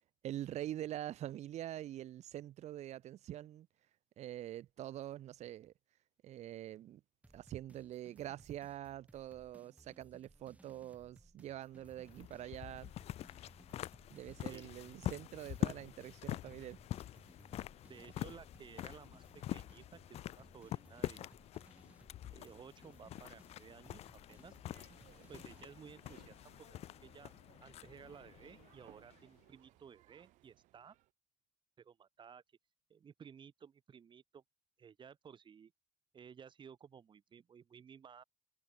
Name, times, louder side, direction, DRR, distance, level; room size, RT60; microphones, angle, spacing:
voice 1, 0.2-3.7 4.2-5.7 6.2-7.0 7.3-12.9 14.1-16.8, right 12 dB, 70° right, 1.9 m, -45 dB
sound 1, 7.2-25.7, right 2 dB, 10° right, 2.1 m, -64 dB
sound 2, 11.7-29.4, left 13 dB, 60° left, 0.4 m, -45 dB
voice 2, 17.9-19.3 19.5-21.3 22.3-24.5 25.0-26.7 27.0-27.3 27.6-30.9 31.8-32.4 32.9-34.4 34.8-35.7 36.1-38.2, right 7 dB, 40° right, 1.7 m, -56 dB
sound 3, 24.7-31.1, right 18 dB, 90° right, 5.5 m, -65 dB
cardioid pair, 105°, 12 cm